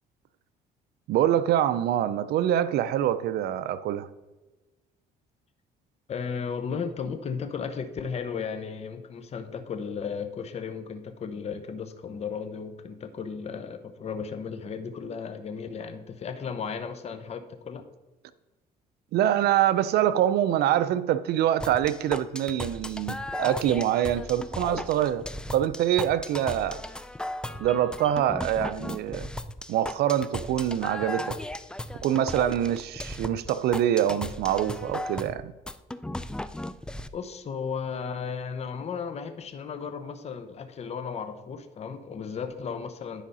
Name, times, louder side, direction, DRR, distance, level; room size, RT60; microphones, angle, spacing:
voice 1, 1.1-4.1 19.1-25.2 25.5-26.8 27.6-29.3 29.7-31.4 32.0-35.5, right 11 dB, 70° right, 0.5 m, -25 dB
voice 2, 6.1-17.8 37.1-43.2, left 6 dB, 40° left, 0.9 m, -35 dB
sound 1, 21.6-37.1, left 1 dB, 5° left, 0.4 m, -36 dB
10.0 x 4.8 x 5.5 m
cardioid pair, 110°, 17 cm